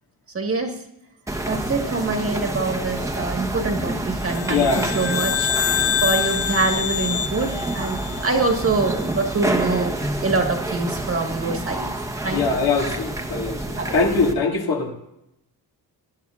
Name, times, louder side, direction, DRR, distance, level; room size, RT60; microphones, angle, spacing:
voice 1, 0.3-0.8 1.4-5.5 5.8-9.9 10.2-11.9 12.2-12.6 13.8-14.0, right 3 dB, 35° right, 3 dB, 1.6 m, -25 dB
sound 1, 1.3-14.3, right 1 dB, 10° right, 1.0 m, -28 dB
sound 2, 4.3-8.8, left 8 dB, 35° left, 0.7 m, -26 dB
voice 2, 4.5-4.9 12.3-14.9, left 4 dB, 70° left, 1 dB, 2.1 m, -22 dB
19.0 x 11.0 x 2.5 m, 0.83 s
cardioid pair, 105°, 39 cm